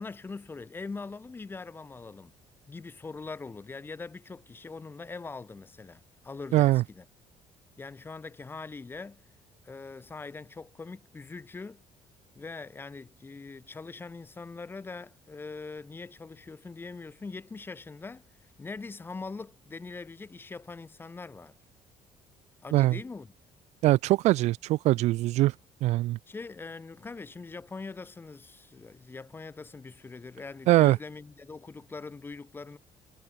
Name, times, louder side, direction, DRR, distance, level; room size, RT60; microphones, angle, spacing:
voice 1, 0.0-2.3 2.7-7.0 7.8-9.2 9.6-11.8 12.3-21.5 22.6-23.3 26.3-32.8, left 4 dB, 20° left, 4.0 m, -42 dB
voice 2, 6.5-6.8 22.7-23.0 23.8-25.5 25.8-26.2 30.7-31.0, right 17 dB, 70° right, 0.8 m, -22 dB
cardioid pair, 145°, 12 cm